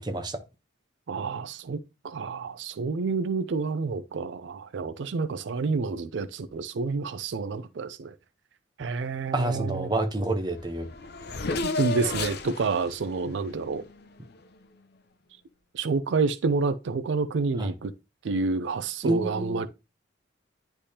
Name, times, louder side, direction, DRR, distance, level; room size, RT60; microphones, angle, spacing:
voice 1, 0.0-0.4 9.3-10.9 17.6-17.7 19.0-19.7, right 1 dB, 25° right, 0.8 m, -29 dB
voice 2, 1.1-8.1 8.8-9.9 11.6-13.8 15.7-17.9 18.2-19.7, right 4 dB, 75° right, 0.4 m, -29 dB
Race car auto racing / Accelerating revving vroom, 10.2-10.3 10.5-14.5, left 3 dB, 55° left, 0.6 m, -34 dB
10.0 x 3.4 x 2.8 m
head